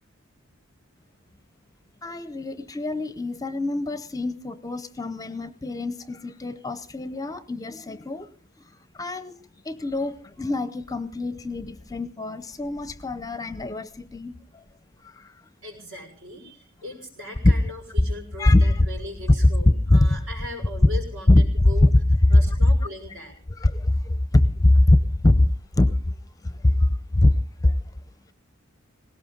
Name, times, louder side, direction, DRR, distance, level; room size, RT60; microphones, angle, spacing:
voice 1, 2.0-8.3 9.0-9.3 9.7-14.6 15.0-15.3 17.4-17.5 18.4-18.9 19.9-20.2 21.3-21.9 22.2-22.6 23.6-25.9 26.4-27.3 27.6-27.8, left 1 dB, 15° left, 13 dB, 0.6 m, -22 dB
voice 2, 15.6-21.9 22.3-23.4, left 1 dB, 70° right, 3 dB, 6.1 m, -39 dB
19.5 x 17.5 x 3.9 m, 0.42 s
head